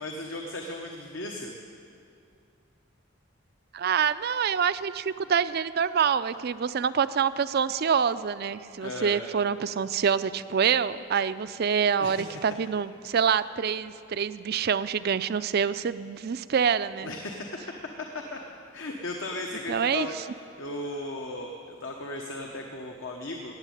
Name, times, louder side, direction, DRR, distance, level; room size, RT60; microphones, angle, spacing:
voice 1, 0.0-1.5 8.8-9.3 12.0-12.3 17.0-17.6 18.3-18.4 18.7-23.6, left 2 dB, 70° left, 2 dB, 1.1 m, -36 dB
voice 2, 3.7-17.1 19.7-20.1, right 7 dB, 50° right, 14 dB, 0.4 m, -26 dB
17.5 x 7.3 x 9.2 m, 2.5 s
head